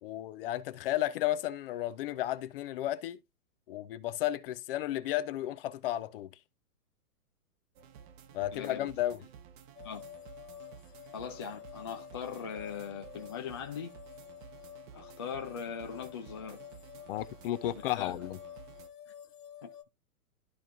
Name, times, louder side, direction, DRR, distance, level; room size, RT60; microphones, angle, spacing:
voice 1, 0.0-3.2 3.7-6.3 8.3-9.2 17.1-18.4, left 14 dB, 40° left, 0.7 m, -33 dB
sound 1, 7.8-18.9, right 7 dB, 35° right, 1.0 m, -53 dB
voice 2, 8.5-8.9 9.8-10.0 11.1-13.9 14.9-16.6 17.6-18.1 19.6-19.7, left 7 dB, 20° left, 0.3 m, -40 dB
sound 2, 9.7-19.8, left 9 dB, 80° left, 1.1 m, -50 dB
13.0 x 4.5 x 2.5 m
hypercardioid pair, 140°, 45 cm